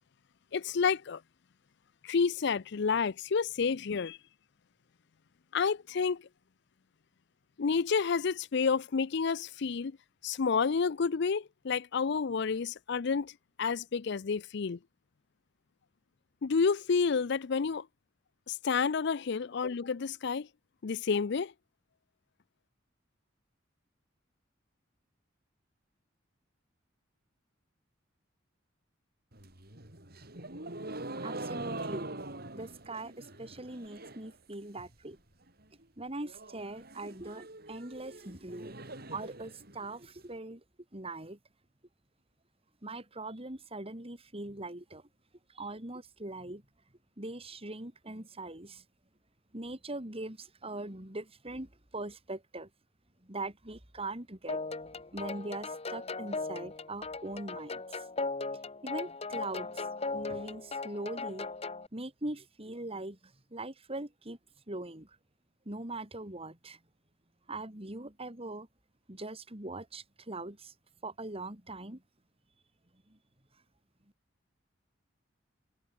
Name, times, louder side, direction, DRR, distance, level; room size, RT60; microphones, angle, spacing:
voice 1, 0.5-1.2 2.0-4.2 5.5-6.2 7.6-9.9 10.2-13.3 13.6-14.8 16.4-17.8 18.5-20.5 20.8-21.5, left 5 dB, 65° left, 0.5 m, -29 dB
sound 1, 29.3-34.3 34.6-35.2 35.5-35.6 35.8-35.9 36.2-40.2, right 2 dB, 55° right, 6.7 m, -43 dB
voice 2, 31.2-32.1 32.5-35.2 36.0-38.8 39.1-40.6 40.9-41.4 42.8-45.0 45.5-46.6 47.2-48.8 49.5-52.7 53.2-54.6 55.1-58.1 58.8-59.9 60.1-61.5 61.9-64.4 64.7-65.2 65.7-66.8 67.5-68.7 69.1-70.7 71.0-72.0 73.1-73.2, right 2 dB, 30° right, 3.6 m, -41 dB
sound 2, 54.5-61.9, left 3 dB, 35° left, 1.5 m, -38 dB
head